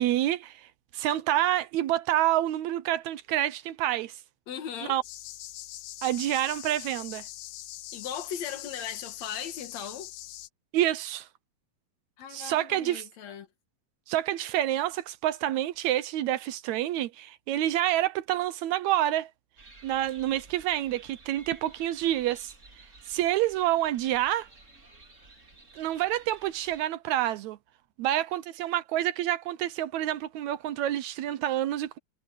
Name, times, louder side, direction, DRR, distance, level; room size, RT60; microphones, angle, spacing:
voice 1, 0.0-4.2 4.9-5.0 6.0-7.3 10.7-11.3 12.3-13.1 14.1-19.3 19.8-22.5 23.1-24.5 25.8-27.6 28.0-32.0, right 13 dB, 75° right, 1.9 m, -28 dB
voice 2, 4.5-5.0 7.9-10.1 12.2-13.5, left 8 dB, 65° left, 2.6 m, -38 dB
sound 1, 5.0-10.5, left 15 dB, 90° left, 2.3 m, -42 dB
sound 2, 19.6-26.8, right 2 dB, 25° right, 3.1 m, -53 dB
omnidirectional pair, 3.5 m